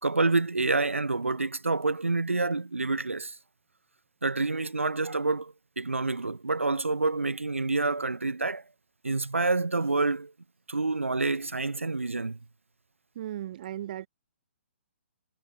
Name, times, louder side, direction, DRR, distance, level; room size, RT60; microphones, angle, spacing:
voice 1, 0.0-3.4 4.2-8.6 9.0-10.3 10.7-12.4, right 3 dB, 80° right, 3.9 m, -28 dB
voice 2, 13.1-14.1, right 12 dB, 45° right, 3.5 m, -36 dB
figure-of-eight pair, 125°, 7 cm